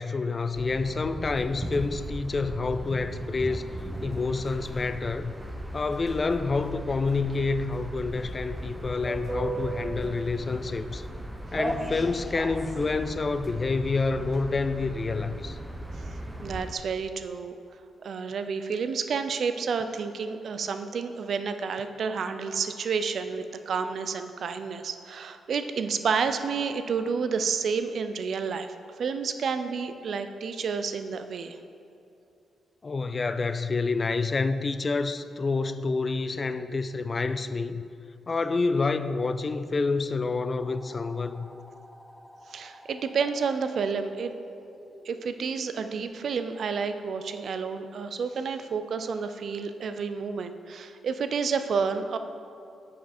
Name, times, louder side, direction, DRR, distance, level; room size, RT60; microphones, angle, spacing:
voice 1, 0.0-3.7 4.0-5.3 5.7-11.0 11.5-15.6 32.8-37.8 38.3-41.5, left 3 dB, 45° left, 0.3 m, -28 dB
sound 1, 0.5-16.7, right 1 dB, 15° right, 0.8 m, -36 dB
voice 2, 16.0-17.6 18.0-31.6 42.5-44.3 45.0-52.2, right 5 dB, 65° right, 0.4 m, -30 dB
sound 2, 40.6-46.1, equal, 10° left, 1.0 m, -51 dB
6.9 x 4.9 x 4.2 m
hypercardioid pair, 40°, 0 cm